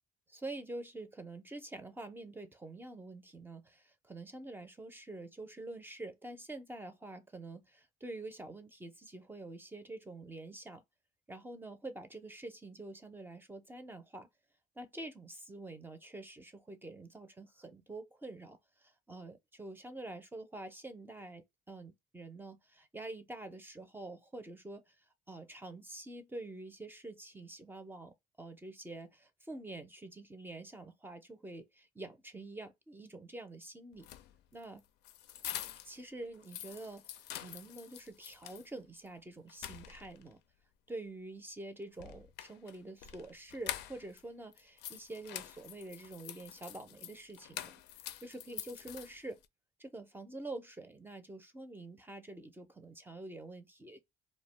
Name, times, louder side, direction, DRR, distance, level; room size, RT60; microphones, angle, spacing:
voice 1, 0.3-10.8 11.3-14.3 14.8-25.0 25.3-28.1 28.4-34.1 34.5-34.8 35.8-40.4 40.9-47.7 48.2-49.4 49.8-54.0, right 2 dB, 10° right, 0.5 m, -47 dB
sound 1, 33.9-36.0 36.3-38.7 39.1-39.2 39.5-40.3 41.9-44.2 44.5-49.4, left 12 dB, 85° left, 0.4 m, -46 dB
2.3 x 2.1 x 3.0 m
cardioid pair, 110°, 17 cm